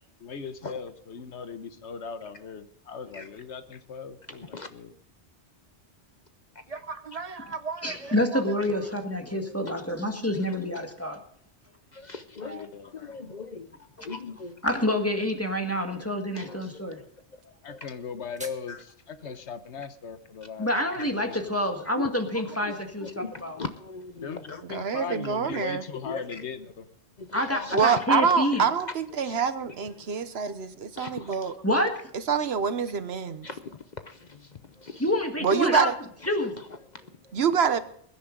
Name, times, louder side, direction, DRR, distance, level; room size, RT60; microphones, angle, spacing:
voice 1, 0.2-4.9 12.4-13.1 17.7-18.8 19.1-20.7 21.0-21.4 24.2-26.8, left 6 dB, 85° left, 1.3 m, -38 dB
voice 2, 4.3-4.7 6.5-6.6 7.9-8.0 8.6-8.7 9.3-9.8 11.9-14.6 16.3-16.8 17.7-17.9 18.7-18.8 19.2-19.4 22.0-24.6 25.5-25.6 26.0-26.4 27.2-28.7 29.2-29.4 29.9-30.2 31.0-31.5 33.4-35.2 36.2-37.8, left 4 dB, 45° left, 0.8 m, -41 dB
voice 3, 6.7-8.9 22.2-22.3, right 5 dB, 35° right, 1.0 m, -38 dB
voice 4, 7.8-11.2 14.6-17.0 20.6-23.6 27.3-28.7 31.6-31.9 35.0-35.9 36.3-36.5, left 1 dB, 15° left, 1.8 m, -27 dB
sound 1, 17.9-18.9, right 1 dB, 5° right, 1.4 m, -46 dB
voice 5, 24.7-25.8 27.7-30.7 31.0-31.5 32.3-33.5 35.4-35.9 37.3-37.8, right 6 dB, 70° right, 1.2 m, -25 dB
22.0 x 10.0 x 3.9 m
omnidirectional pair, 1.1 m